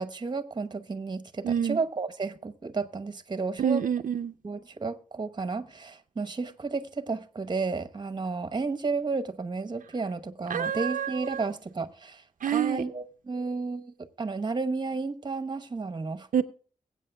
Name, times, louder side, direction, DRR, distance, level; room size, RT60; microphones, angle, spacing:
voice 1, 0.0-3.8 4.4-16.4, right 4 dB, 30° right, 1.0 m, -32 dB
voice 2, 1.4-1.8 3.6-4.3 10.5-11.5 12.4-12.8 16.3-16.4, right 8 dB, 65° right, 0.5 m, -27 dB
22.0 x 8.5 x 2.3 m
wide cardioid pair, 105°, 14 cm